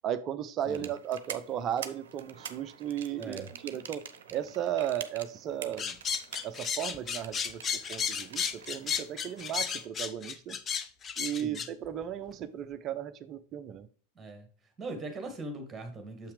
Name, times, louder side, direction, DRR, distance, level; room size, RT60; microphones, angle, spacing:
voice 1, 0.0-6.0 6.4-7.6 7.9-10.6 11.2-13.9, right 10 dB, 30° right, 0.5 m, -35 dB
sound 1, 0.7-9.9, right 8 dB, 60° right, 0.7 m, -47 dB
voice 2, 3.2-3.5 11.3-11.7 14.2-16.3, right 2 dB, 15° right, 1.9 m, -41 dB
sound 2, 5.8-11.7, left 7 dB, 25° left, 0.6 m, -33 dB
7.3 x 5.7 x 3.2 m
figure-of-eight pair, 90°, 0 cm